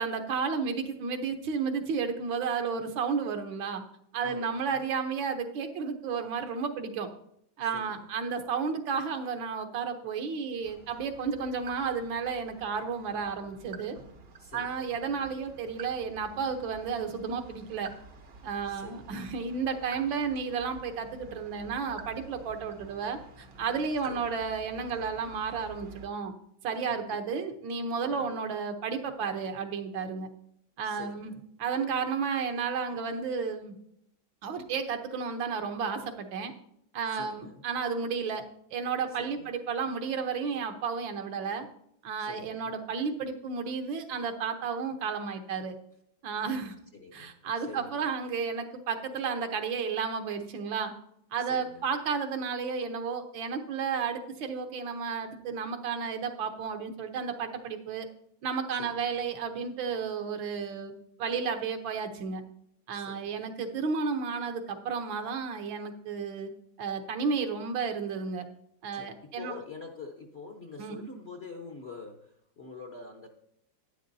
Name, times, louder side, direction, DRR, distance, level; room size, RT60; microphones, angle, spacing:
voice 1, 0.0-3.8 4.1-7.1 7.6-14.0 14.5-17.9 18.4-26.3 26.6-30.3 30.8-31.3 31.6-33.7 34.4-36.5 36.9-38.4 38.7-41.7 42.0-45.7 46.2-46.8 47.1-50.9 51.3-58.1 58.4-60.9 61.2-62.4 62.9-66.5 66.8-68.4 68.8-69.5 70.8-71.0, right 5 dB, 75° right, 6 dB, 1.7 m, -32 dB
voice 2, 4.2-4.8 7.7-8.1 14.4-14.9 18.6-19.2 24.0-24.4 24.9-25.1 26.9-27.4 28.1-28.4 30.8-31.4 37.1-37.6 39.1-39.5 42.2-42.7 46.3-46.6 46.9-48.1 51.4-51.9 58.7-59.1 62.9-63.4 68.9-73.3, left 4 dB, 50° left, 3 dB, 0.8 m, -47 dB
sound 1, 10.6-26.1, right 4 dB, 50° right, 0.7 m, -50 dB
11.5 x 9.9 x 2.7 m, 0.72 s
omnidirectional pair, 2.1 m